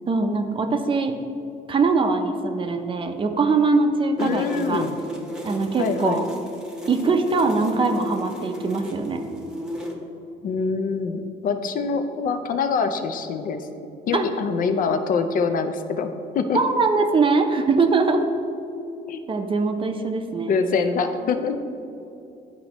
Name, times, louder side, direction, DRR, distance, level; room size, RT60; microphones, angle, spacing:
voice 1, 0.1-1.1 1.7-4.9 5.4-6.3 6.9-9.2 14.1-14.3 16.5-18.2 19.3-20.5, right 4 dB, 30° right, 6 dB, 0.6 m, -22 dB
voice 2, 4.2-5.0 5.8-6.3 10.4-13.7 14.1-16.6 19.1-19.2 20.5-21.6, left 5 dB, 55° left, 7 dB, 0.5 m, -24 dB
sound 1, 4.2-9.9, equal, 5° right, 0.9 m, -34 dB
10.5 x 4.2 x 3.0 m, 2.8 s
cardioid pair, 110°, 17 cm